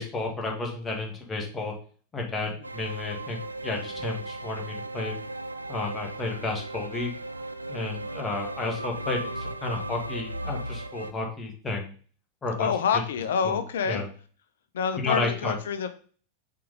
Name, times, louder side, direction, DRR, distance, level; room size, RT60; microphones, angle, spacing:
voice 1, 0.0-1.7 2.1-5.1 5.7-7.1 7.7-11.9 12.4-12.7 13.4-13.6 13.9-14.1 15.0-15.5, left 3 dB, 15° left, 1 dB, 1.8 m, -32 dB
sound 1, 2.6-11.1, right 2 dB, 85° right, 0.4 m, -36 dB
voice 2, 12.6-14.0 14.7-15.9, left 6 dB, 60° left, 10 dB, 0.8 m, -27 dB
5.8 x 3.8 x 5.2 m, 0.43 s
figure-of-eight pair, 90°, 0 cm